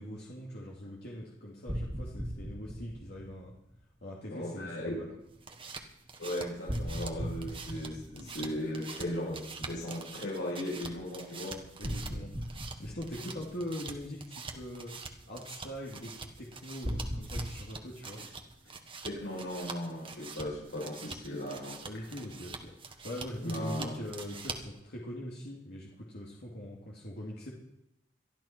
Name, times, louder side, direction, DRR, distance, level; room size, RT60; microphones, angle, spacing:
voice 1, 0.0-3.5 4.0-5.1 11.8-12.5 12.8-14.9 15.3-18.2 21.8-27.5, equal, 60° left, -4 dB, 2.7 m, -42 dB
sound 1, 1.7-3.7 6.7-9.0 11.8-13.9 16.8-17.5, equal, 45° right, 2.7 m, -38 dB
voice 2, 4.3-5.0 6.2-11.6 19.0-21.8 23.4-23.9, left 1 dB, 85° left, -6 dB, 7.8 m, -37 dB
sound 2, 5.2-24.8, right 4 dB, 30° right, 1.5 m, -46 dB
22.5 x 13.0 x 4.5 m, 0.83 s
head